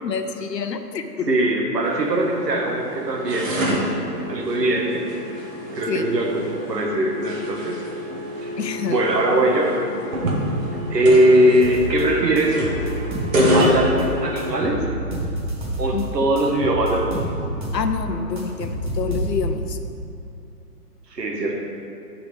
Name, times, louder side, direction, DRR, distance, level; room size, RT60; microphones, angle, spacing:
voice 1, 0.0-1.3 5.9-6.0 8.6-9.0 15.9-16.0 17.7-19.8, left 6 dB, 90° left, 8 dB, 0.9 m, -27 dB
voice 2, 1.3-3.7 4.3-5.0 5.7-7.8 8.4-8.5 8.9-9.8 10.9-12.8 13.5-14.8 15.8-17.3 21.1-21.6, right 1 dB, 80° right, 0 dB, 1.9 m, -20 dB
sound 1, 1.8-14.7, equal, 50° right, 1.8 m, -26 dB
sound 2, 11.6-12.0 12.4-14.0 14.4-16.0 16.4-17.9 18.1-19.6, right 1 dB, 30° right, 1.4 m, -28 dB
9.8 x 5.0 x 5.3 m, 2.6 s
hypercardioid pair, 170°, 48 cm